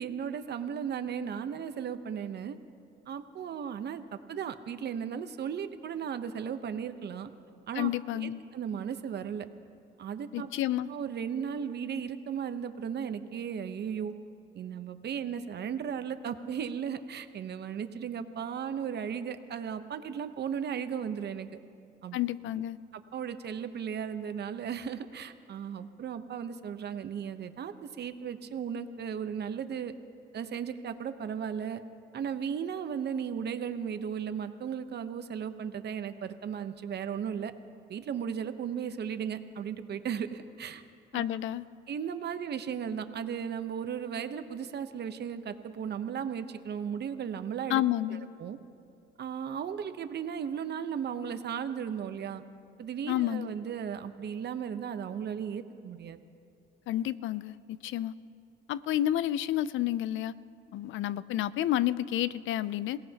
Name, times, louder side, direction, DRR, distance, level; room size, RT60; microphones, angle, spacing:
voice 1, 0.0-2.6 3.1-7.3 7.7-7.9 8.1-9.5 10.0-10.5 10.8-14.1 14.5-21.5 22.0-22.2 22.9-29.9 30.3-31.8 32.1-37.5 37.9-40.8 41.1-41.3 41.9-47.8 48.1-48.6 49.2-52.4 52.8-56.2, right 7 dB, 55° right, 9 dB, 0.9 m, -36 dB
voice 2, 7.8-8.4 10.3-10.9 22.1-22.8 41.1-41.6 47.7-48.2 53.1-53.5 56.9-58.1 58.7-60.3 60.7-63.0, left 13 dB, 80° left, 17 dB, 0.5 m, -30 dB
28.0 x 17.5 x 2.9 m, 2.4 s
cardioid pair, 90°, 20 cm